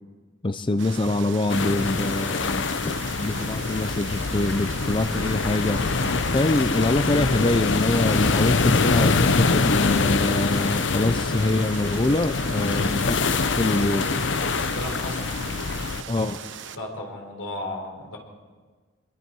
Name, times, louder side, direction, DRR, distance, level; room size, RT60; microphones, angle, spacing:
voice 1, 0.4-5.8 6.3-13.2 13.6-14.1 16.1-16.4, left 2 dB, 25° left, 10 dB, 0.5 m, -24 dB
sound 1, 0.8-16.8, right 6 dB, 65° right, 1.0 m, -39 dB
sound 2, 1.5-16.0, left 4 dB, 65° left, 0.7 m, -24 dB
voice 2, 14.3-15.4 16.7-18.2, left 1 dB, 90° left, 0 dB, 4.9 m, -35 dB
25.0 x 22.0 x 4.7 m, 1.4 s
head